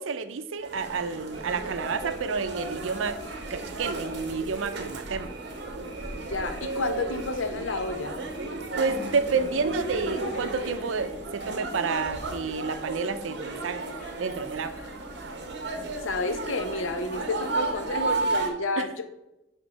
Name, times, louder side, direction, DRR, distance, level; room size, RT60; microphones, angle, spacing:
voice 1, 0.0-3.2 3.5-5.3 8.8-13.8 14.2-14.8 18.8-19.0, right 4 dB, 85° right, 11 dB, 0.5 m, -30 dB
sound 1, 0.6-18.5, right 3 dB, 60° right, 0.9 m, -34 dB
sound 2, 1.3-10.8, right 1 dB, 25° right, 0.8 m, -47 dB
voice 2, 6.2-8.1 14.7-14.9 16.0-19.0, left 3 dB, 90° left, 8 dB, 0.7 m, -30 dB
sound 3, 9.0-16.3, left 1 dB, 45° left, 0.8 m, -50 dB
6.8 x 3.7 x 4.6 m, 0.92 s
head